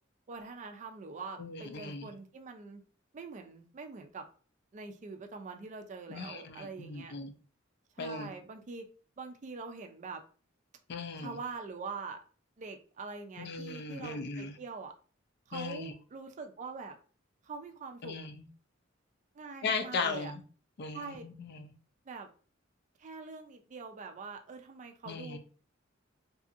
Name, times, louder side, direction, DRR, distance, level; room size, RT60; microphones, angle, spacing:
voice 1, 0.3-2.8 3.1-4.3 4.7-7.1 8.0-8.9 9.2-10.2 11.2-12.2 12.6-14.9 15.5-17.0 17.4-18.2 19.3-20.3 20.9-21.2 22.1-22.3 23.0-25.4, right 4 dB, 40° right, 5 dB, 0.4 m, -44 dB
voice 2, 1.4-2.1 6.1-7.3 8.0-8.3 10.9-11.4 13.4-14.6 15.5-15.9 18.0-18.5 19.6-20.4 20.8-21.7 25.0-25.4, left 4 dB, 55° left, 7 dB, 0.4 m, -37 dB
2.7 x 2.4 x 2.5 m, 0.39 s
head